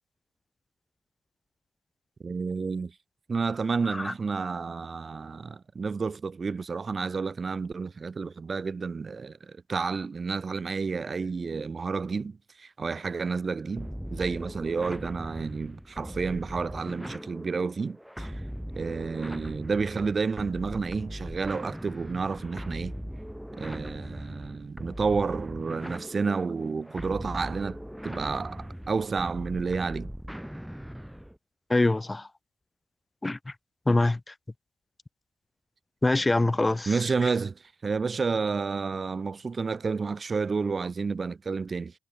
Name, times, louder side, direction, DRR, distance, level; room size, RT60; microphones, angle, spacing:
voice 1, 2.2-2.9 3.3-18.4 18.8-22.9 23.6-27.8 28.0-30.1 36.9-41.9, right 4 dB, 35° right, 5.3 m, -30 dB
sound 1, 13.8-31.4, equal, ahead, 1.5 m, -39 dB
voice 2, 31.7-32.3 33.2-33.4 33.9-34.3 36.0-36.9, left 2 dB, 15° left, 0.6 m, -24 dB
cardioid pair, 90°, 0 cm